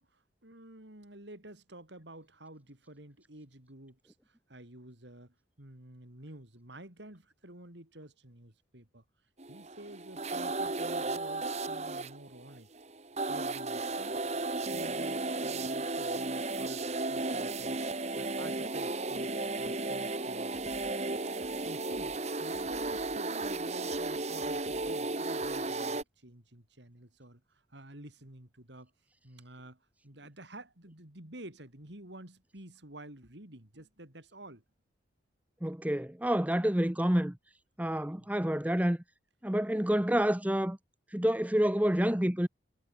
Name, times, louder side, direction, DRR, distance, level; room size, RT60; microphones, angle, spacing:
voice 1, 0.0-9.0 9.5-12.7 13.3-14.4 14.7-17.8 18.2-20.5 21.6-28.9 29.2-34.6 38.2-38.3, right 1 dB, 65° right, 4.3 m, -50 dB
sound 1, 9.4-26.0, right 2 dB, 35° right, 1.7 m, -34 dB
sound 2, 20.5-25.8, left 1 dB, 50° left, 6.1 m, -59 dB
voice 2, 35.6-37.4 37.8-39.0 39.4-40.8 41.1-42.5, equal, 10° right, 0.8 m, -28 dB
head